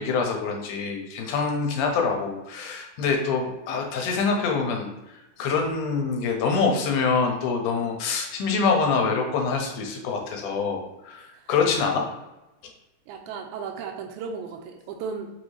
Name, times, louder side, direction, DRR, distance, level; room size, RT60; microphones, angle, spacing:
voice 1, 0.0-12.1, left 5 dB, 75° left, 2 dB, 2.1 m, -25 dB
voice 2, 13.1-15.3, right 5 dB, 80° right, 2 dB, 1.8 m, -35 dB
5.6 x 2.7 x 3.1 m, 0.98 s
omnidirectional pair, 3.8 m